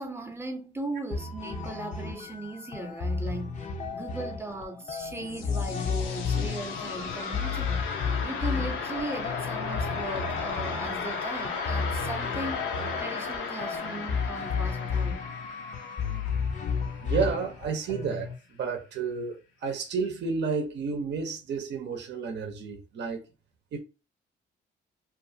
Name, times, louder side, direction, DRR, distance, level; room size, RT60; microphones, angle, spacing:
voice 1, 0.0-7.8 8.2-15.2, right 2 dB, 10° right, 0.6 m, -38 dB
sound 1, 1.1-18.4, left 5 dB, 40° left, 0.5 m, -33 dB
sound 2, 4.8-17.6, left 5 dB, 90° left, 0.6 m, -35 dB
voice 2, 17.0-23.2 23.7-23.8, right 5 dB, 60° right, 0.7 m, -31 dB
2.4 x 2.4 x 2.6 m
cardioid pair, 90°, 20 cm